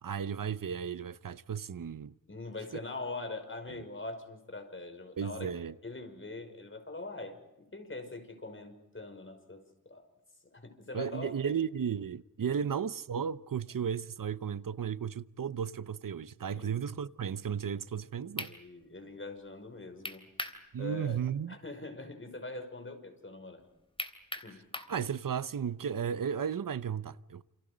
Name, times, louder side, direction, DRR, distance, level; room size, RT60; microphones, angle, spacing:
voice 1, 0.0-2.1 3.7-3.8 5.2-5.7 10.9-18.5 20.7-21.6 24.9-27.4, right 7 dB, 75° right, 0.8 m, -34 dB
voice 2, 2.3-5.5 5.8-7.4 7.7-10.0 10.5-11.5 12.5-12.6 16.5-16.7 18.4-20.2 20.8-21.2 21.5-23.6 24.4-24.6, left 2 dB, 40° left, 5.5 m, -43 dB
sound 1, 18.0-18.1 18.4-18.6 20.0-20.6 21.0-21.1 24.0-25.0, left 1 dB, 15° left, 3.1 m, -38 dB
29.5 x 28.5 x 5.1 m
wide cardioid pair, 60°, 33 cm